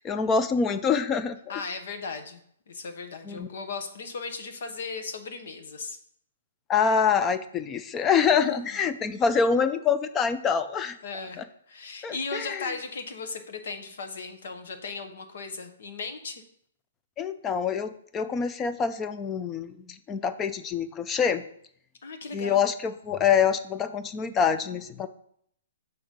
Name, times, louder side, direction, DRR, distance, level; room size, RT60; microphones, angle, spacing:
voice 1, 0.0-1.4 3.3-3.5 6.7-11.0 11.4-11.5 12.0-12.7 17.2-21.4 22.3-25.1, left 6 dB, 15° left, 11 dB, 0.4 m, -25 dB
voice 2, 1.5-2.4 2.7-6.0 8.3-8.8 11.0-11.4 11.7-16.4 22.0-22.7, left 4 dB, 65° left, 6 dB, 1.1 m, -37 dB
6.2 x 3.9 x 5.3 m, 0.68 s
hypercardioid pair, 150°, 0 cm